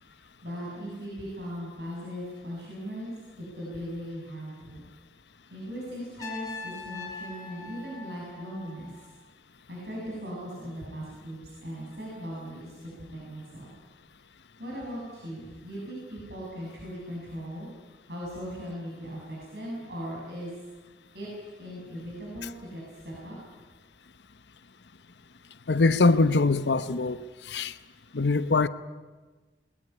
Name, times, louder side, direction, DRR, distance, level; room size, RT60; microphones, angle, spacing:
voice 1, 0.0-3.1 3.5-4.8 5.5-8.9 9.7-13.7 14.6-17.7 18.1-20.6 21.1-21.3 21.6-23.4, equal, 65° right, 7.1 m, -39 dB
Trumpet, 6.2-9.2, left 3 dB, 20° left, 3.7 m, -42 dB
voice 2, 25.7-27.2 27.5-27.7 28.1-28.7, left 3 dB, 80° left, 0.9 m, -22 dB
21.0 x 20.5 x 9.9 m
head